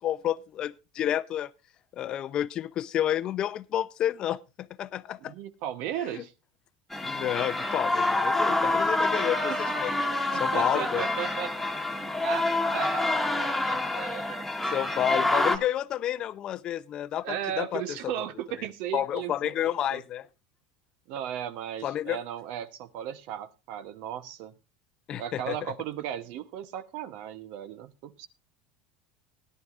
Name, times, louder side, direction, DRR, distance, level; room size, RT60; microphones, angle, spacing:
voice 1, 0.0-1.5 1.9-5.3 6.1-6.2 7.0-9.9 10.4-11.0 14.7-17.8 18.9-20.3 21.8-22.2 25.1-25.6, left 11 dB, 35° left, 0.6 m, -30 dB
voice 2, 5.2-6.3 8.6-8.8 9.2-9.4 10.3-11.5 12.2-12.5 12.7-13.3 13.6-14.8 17.2-19.5 19.9-20.0 21.1-24.5 25.2-28.3, right 10 dB, 60° right, 1.0 m, -36 dB
sound 1, 6.9-15.6, left 2 dB, 5° left, 1.5 m, -27 dB
17.5 x 11.0 x 2.5 m
supercardioid pair, 145°, 2 cm